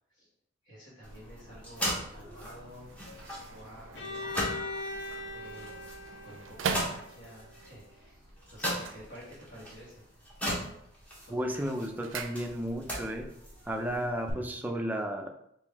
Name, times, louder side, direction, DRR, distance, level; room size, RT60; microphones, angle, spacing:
voice 1, 0.6-3.0 3.3-4.3 5.3-5.9 6.2-8.2 8.5-10.0 11.3-11.6, equal, 85° left, -10 dB, 1.3 m, -50 dB
sound 1, 1.0-14.3, equal, 5° left, 0.9 m, -39 dB
sound 2, 2.6-7.6 8.6-9.7 10.0-10.5 10.9-13.0 13.2-13.3, right 5 dB, 85° right, 0.4 m, -41 dB
Bowed string instrument, 3.9-7.8, left 2 dB, 65° left, 0.5 m, -41 dB
voice 2, 11.3-13.3 13.7-15.3, equal, 10° right, 3 dB, 0.4 m, -33 dB
3.5 x 2.6 x 3.5 m, 0.75 s
head